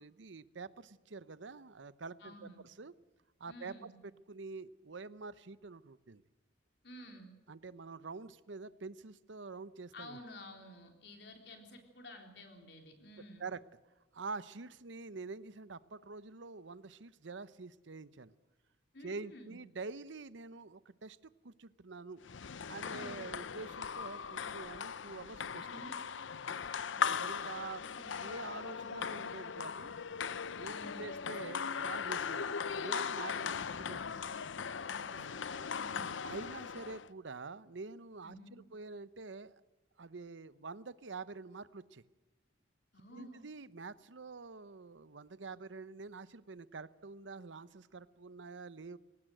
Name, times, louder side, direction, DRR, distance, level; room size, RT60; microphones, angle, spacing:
voice 1, 0.0-2.5 2.8-2.9 3.4-3.9 4.3-6.2 7.5-10.2 13.4-13.6 14.1-18.3 19.0-22.2 22.7-25.7 27.1-29.9 30.5-33.5 33.8-34.3 36.2-38.4 38.7-39.5 40.0-42.1 43.1-49.0, right 4 dB, 80° right, 16 dB, 0.8 m, -46 dB
voice 2, 2.2-2.6 3.5-3.9 6.8-7.3 9.9-13.5 18.9-19.5 22.9-23.4 25.6-25.9 26.6-27.2 30.6-31.1 34.8-36.2 38.2-38.6 42.9-43.4, left 1 dB, 65° left, 4 dB, 3.8 m, -52 dB
sound 1, 22.2-37.1, left 6 dB, 90° left, 0.7 m, -39 dB
22.5 x 18.0 x 7.9 m, 1.1 s
head